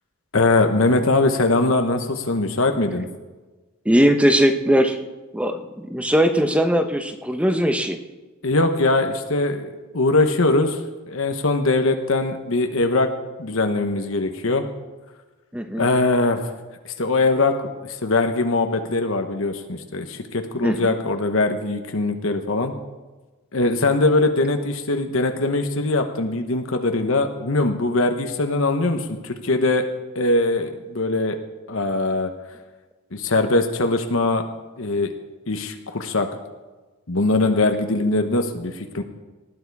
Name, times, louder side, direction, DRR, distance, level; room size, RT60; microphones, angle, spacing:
voice 1, 0.3-3.1 8.4-10.8 11.1-13.1 13.4-14.6 15.8-16.5 16.8-22.7 23.5-29.8 30.1-31.4 31.7-32.3 33.1-34.4 34.8-35.1 35.5-36.3 37.1-39.0, left 2 dB, 65° left, 6 dB, 1.1 m, -21 dB
voice 2, 3.8-5.0 5.3-8.0 15.5-15.9 20.6-20.9, equal, 5° right, 7 dB, 0.9 m, -19 dB
19.0 x 11.0 x 4.7 m, 1.2 s
head